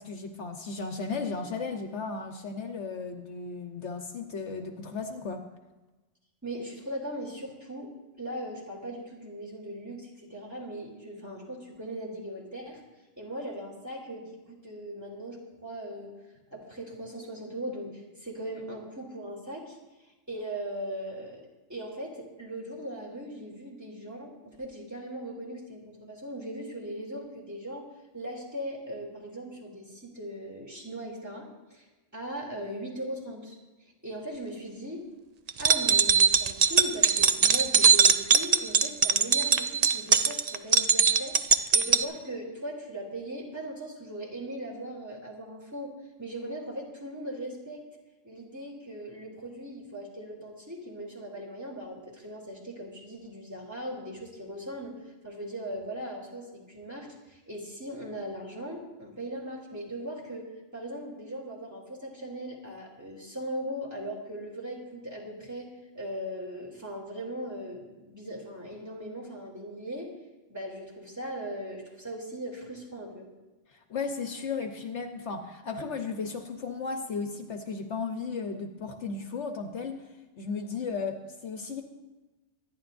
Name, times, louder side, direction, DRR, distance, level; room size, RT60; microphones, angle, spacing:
voice 1, 0.0-5.5 73.7-80.1 80.4-81.8, left 4 dB, 65° left, 5 dB, 1.2 m, -35 dB
voice 2, 6.4-7.9 8.2-12.8 13.2-16.1 16.5-19.8 20.3-21.4 21.7-24.3 24.6-27.8 28.1-31.8 32.1-33.6 34.0-35.0 35.6-45.9 46.2-47.8 48.2-55.0 55.2-60.5 60.7-65.7 65.9-70.1 70.5-73.3, right 1 dB, 15° right, -3 dB, 3.0 m, -39 dB
sound 1, 35.5-42.0, right 6 dB, 55° right, 0.4 m, -21 dB
25.5 x 10.5 x 2.6 m, 1.1 s
omnidirectional pair, 1.3 m